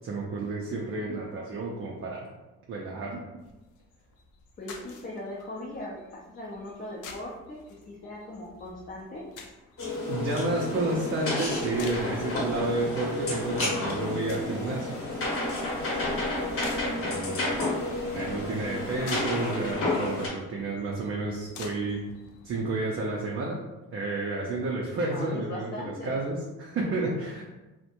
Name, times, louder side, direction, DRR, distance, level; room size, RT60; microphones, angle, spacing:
voice 1, 0.0-2.3 2.7-3.2 10.1-15.0 17.0-17.5 18.1-22.0 22.4-23.6 23.9-27.4, right 2 dB, 45° right, -3 dB, 0.5 m, -31 dB
sound 1, 3.4-22.5, left 3 dB, 85° left, 0.5 m, -49 dB
voice 2, 4.6-9.3 25.1-26.2, left 1 dB, 30° left, -4 dB, 0.5 m, -39 dB
sound 2, 9.8-20.3, left 2 dB, 45° left, 0.9 m, -30 dB
2.4 x 2.1 x 2.8 m, 1.1 s
cardioid pair, 90°, 30 cm